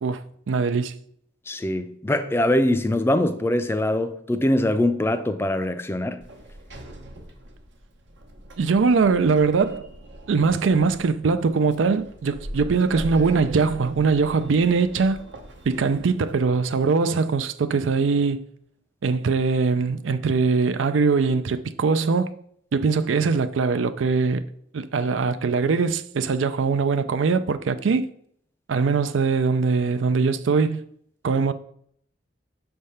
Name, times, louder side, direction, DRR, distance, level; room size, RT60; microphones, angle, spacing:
voice 1, 0.0-0.9 8.6-9.9 10.3-15.2 15.7-18.4 19.0-22.3 22.7-24.4 24.7-28.1 28.7-30.8 31.2-31.5, right 4 dB, 90° right, 0.4 m, -22 dB
voice 2, 1.5-6.2, left 1 dB, 15° left, 0.4 m, -23 dB
Sliding door, 6.2-16.3, right 1 dB, 75° right, 0.9 m, -40 dB
6.5 x 3.4 x 5.5 m
head